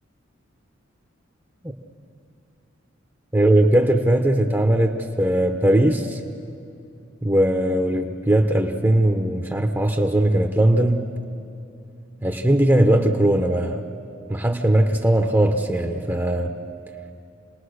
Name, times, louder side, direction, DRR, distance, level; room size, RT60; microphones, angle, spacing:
voice 1, 3.3-6.2 7.2-11.1 12.2-13.9 14.3-16.5, right 1 dB, 10° right, 4 dB, 0.9 m, -19 dB
28.5 x 19.0 x 6.5 m, 2.7 s
head